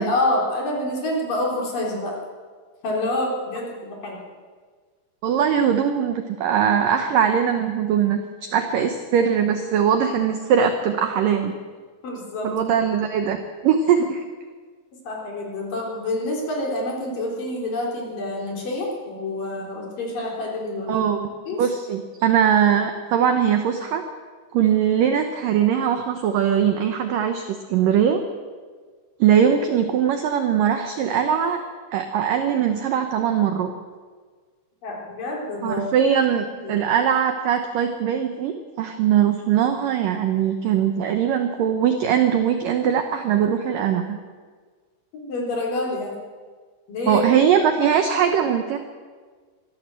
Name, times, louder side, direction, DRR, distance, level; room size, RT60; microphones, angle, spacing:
voice 1, 0.0-2.2 2.8-4.2 12.0-12.6 15.0-21.1 21.5-21.7 34.8-35.9 36.5-36.8 45.1-46.2 46.9-47.2, left 1 dB, 50° left, -1 dB, 5.2 m, -27 dB
voice 2, 5.2-11.5 12.4-14.2 20.9-21.3 21.6-24.0 24.5-28.2 29.2-31.6 31.9-33.7 35.6-44.2 47.1-48.8, right 8 dB, 80° right, 7 dB, 2.0 m, -21 dB
23.5 x 14.0 x 7.7 m, 1.6 s
omnidirectional pair, 5.3 m